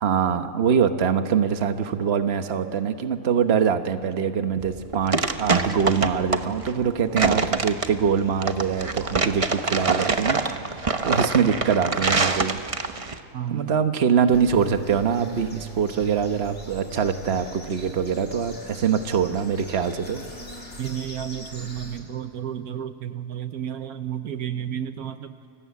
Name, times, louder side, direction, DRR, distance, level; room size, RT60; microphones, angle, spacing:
voice 1, 0.0-12.6 13.5-20.2, right 7 dB, 45° right, 8 dB, 1.3 m, -23 dB
sound 1, 4.6-13.2, right 4 dB, 25° right, 0.8 m, -25 dB
voice 2, 13.3-13.8 20.8-25.4, right 10 dB, 75° right, 10 dB, 1.3 m, -32 dB
sound 2, 14.3-22.0, right 3 dB, 50° left, 3.9 m, -40 dB
29.5 x 23.0 x 8.4 m, 2.8 s
omnidirectional pair, 1.6 m